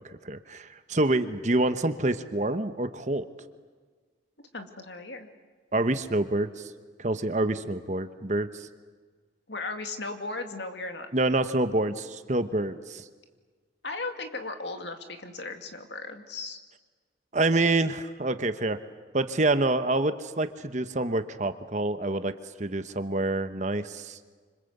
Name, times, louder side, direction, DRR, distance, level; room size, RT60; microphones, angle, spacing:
voice 1, 0.0-3.3 5.7-6.7 7.0-8.7 11.1-13.0 17.3-18.8 19.1-22.3 22.6-24.2, right 2 dB, 40° right, 10 dB, 1.0 m, -27 dB
voice 2, 4.5-5.3 9.5-11.1 13.8-16.6, left 3 dB, 65° left, 6 dB, 2.4 m, -36 dB
27.0 x 25.5 x 8.1 m, 1.5 s
head